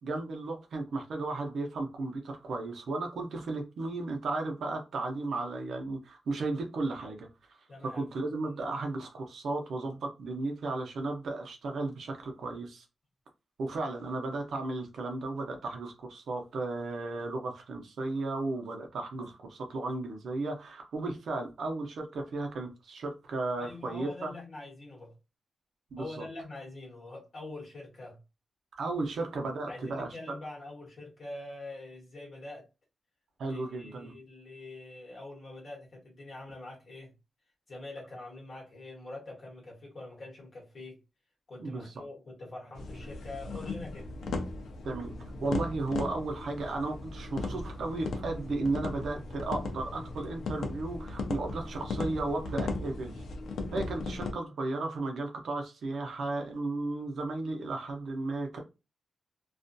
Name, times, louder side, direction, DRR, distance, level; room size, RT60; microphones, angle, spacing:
voice 1, 0.0-7.6 7.9-12.8 13.6-24.3 25.9-26.2 28.7-30.1 33.4-34.1 41.6-42.1 44.8-53.2 53.7-58.6, right 2 dB, 70° right, 0.6 m, -34 dB
voice 2, 7.7-8.0 8.4-8.6 23.6-25.2 26.0-28.2 29.1-29.2 29.7-32.7 33.5-37.1 37.7-41.0 41.5-44.1, left 2 dB, 45° left, 1.2 m, -44 dB
sound 1, 42.8-54.3, left 3 dB, 80° left, 0.5 m, -37 dB
2.4 x 2.2 x 2.5 m
wide cardioid pair, 170°, 0 cm